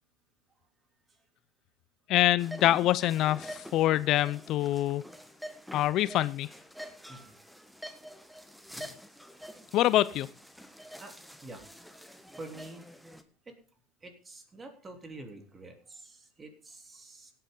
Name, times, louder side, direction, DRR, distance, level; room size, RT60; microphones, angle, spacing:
voice 1, 2.1-5.0 5.7-6.5 9.7-10.3, left 14 dB, 55° left, 18 dB, 0.5 m, -25 dB
sound 1, 2.4-13.2, equal, ahead, 1.2 m, -47 dB
voice 2, 12.3-12.9 13.5-13.6 14.0-17.3, right 2 dB, 25° right, 4 dB, 3.2 m, -47 dB
17.0 x 8.5 x 3.8 m, 0.41 s
hypercardioid pair, 90°, 0 cm